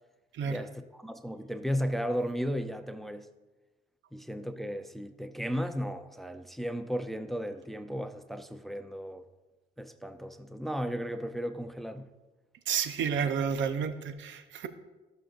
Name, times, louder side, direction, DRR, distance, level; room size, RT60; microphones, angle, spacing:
voice 1, 0.4-3.3 4.1-9.2 9.8-12.1, equal, ahead, 0.5 m, -35 dB
voice 2, 12.7-14.7, right 7 dB, 70° right, 0.7 m, -31 dB
14.5 x 6.5 x 2.5 m
cardioid pair, 90°, 20 cm